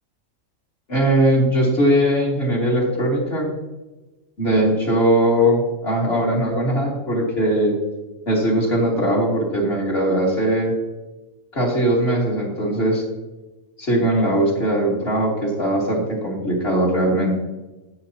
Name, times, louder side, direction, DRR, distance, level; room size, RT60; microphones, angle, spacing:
voice 1, 0.9-3.5 4.4-7.8 8.3-10.7 11.5-13.0 13.8-17.4, right 1 dB, 45° left, -3 dB, 3.0 m, -20 dB
15.0 x 8.2 x 3.0 m, 1.1 s
omnidirectional pair, 1.5 m